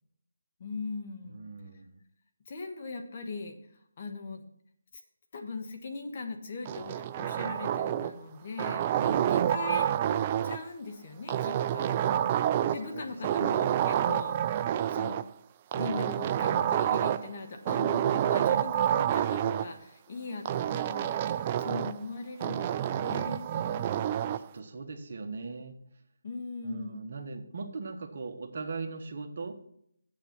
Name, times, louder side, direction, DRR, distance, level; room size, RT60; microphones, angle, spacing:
voice 1, 0.6-1.5 2.5-3.6 4.0-4.4 5.3-9.9 10.4-11.9 12.7-14.4 14.6-15.2 15.7-23.5 26.2-27.1, left 4 dB, 40° left, 4 dB, 1.4 m, -40 dB
voice 2, 1.2-2.0 9.0-9.4 12.6-13.5 23.5-25.8 26.6-29.6, right 4 dB, 50° right, 5 dB, 1.3 m, -40 dB
sound 1, 6.7-8.2 8.6-10.6 11.3-12.9 13.2-15.2 15.7-17.3 17.7-19.7 20.5-22.0 22.4-24.4, right 10 dB, 25° right, 0.3 m, -28 dB
8.0 x 7.1 x 5.9 m, 0.70 s
figure-of-eight pair, 160°, 0 cm